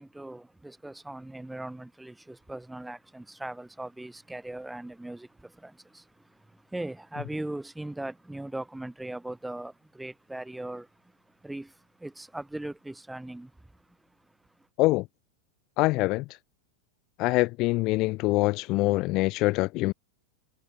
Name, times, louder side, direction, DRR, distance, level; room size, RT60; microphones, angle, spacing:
voice 1, 0.0-14.7, right 1 dB, 5° right, 5.3 m, -40 dB
voice 2, 15.8-16.2 17.2-19.9, left 21 dB, 40° left, 0.4 m, -24 dB
figure-of-eight pair, 90°, 0 cm